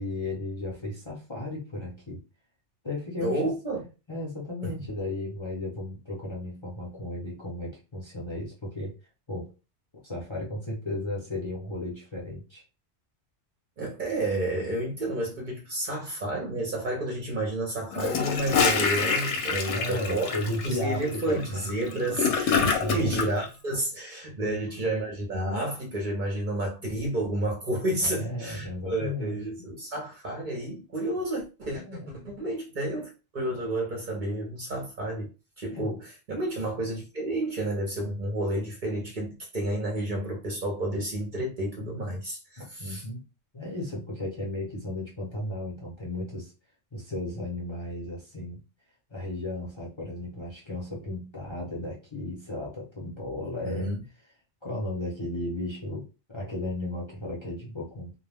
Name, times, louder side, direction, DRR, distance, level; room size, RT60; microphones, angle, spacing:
voice 1, 0.0-2.2 2.8-3.5 4.1-8.9 9.3-9.5 10.0-12.6 19.7-21.7 22.8-23.3 24.4-24.6 28.0-29.4 31.7-32.4 35.7-36.0 42.6-43.2 43.5-46.5 46.9-48.6 49.1-53.9 54.6-56.0 56.3-58.1, left 1 dB, 30° left, 0.6 m, -34 dB
voice 2, 3.2-3.8 13.8-20.3 20.6-31.8 32.2-35.3 35.6-43.0 53.6-54.0, right 1 dB, 50° right, 0.7 m, -30 dB
Gurgling / Toilet flush, 17.9-23.3, left 5 dB, 75° left, 0.9 m, -26 dB
2.2 x 2.1 x 3.3 m
omnidirectional pair, 1.2 m